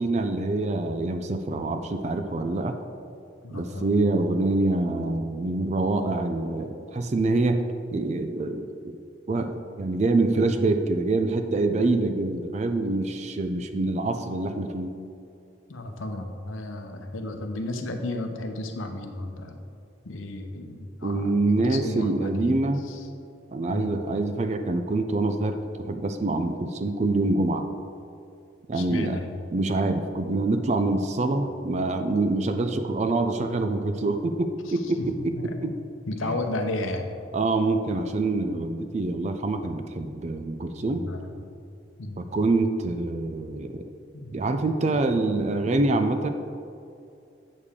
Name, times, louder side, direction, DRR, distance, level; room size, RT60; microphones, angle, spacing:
voice 1, 0.0-2.8 3.5-9.0 9.3-14.9 21.0-22.9 23.5-27.7 28.7-29.2 29.5-35.7 36.2-36.4 37.3-41.0 42.2-43.8 44.3-46.3, right 2 dB, 35° right, 7 dB, 0.4 m, -25 dB
voice 2, 3.4-3.9 15.7-19.6 20.0-22.6 22.9-23.1 23.7-23.9 28.7-29.3 35.0-35.6 36.1-37.1 40.8-41.2 42.0-42.2 44.1-44.4, left 2 dB, 85° left, 5 dB, 0.8 m, -33 dB
8.2 x 6.6 x 3.6 m, 2.5 s
head